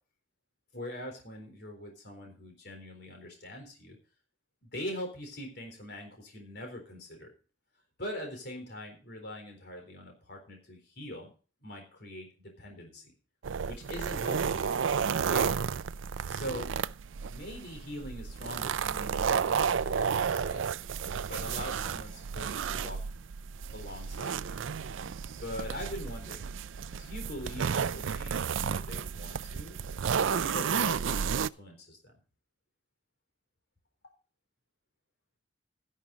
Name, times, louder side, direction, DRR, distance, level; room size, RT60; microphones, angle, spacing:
voice 1, 0.7-4.0 4.6-7.3 8.0-11.3 11.6-12.3 12.6-13.1 13.7-14.6 15.3-15.7 16.3-16.7 17.3-20.7 21.3-23.0 23.7-24.6 25.4-26.5 27.0-29.8 30.3-32.2, left 1 dB, 55° left, 3 dB, 4.1 m, -42 dB
sound 1, 13.4-31.5, right 6 dB, 85° right, 0.5 m, -32 dB
13.0 x 11.0 x 4.0 m, 0.36 s
head